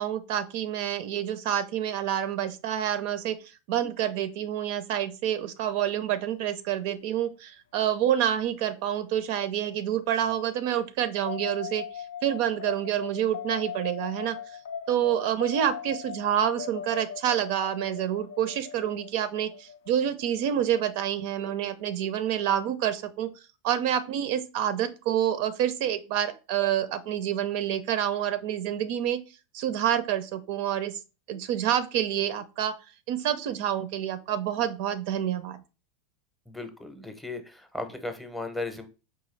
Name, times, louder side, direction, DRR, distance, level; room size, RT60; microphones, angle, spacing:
voice 1, 0.0-3.4 3.7-14.4 14.9-23.3 23.6-29.2 29.5-30.9 31.3-32.7 33.1-35.6, right 10 dB, 65° right, 12 dB, 0.4 m, -28 dB
sound 1, 11.3-21.4, left 8 dB, 85° left, 0.3 m, -40 dB
voice 2, 36.5-38.9, left 2 dB, 5° left, 7 dB, 0.6 m, -36 dB
4.8 x 2.3 x 3.2 m, 0.31 s
supercardioid pair, 120°, 0 cm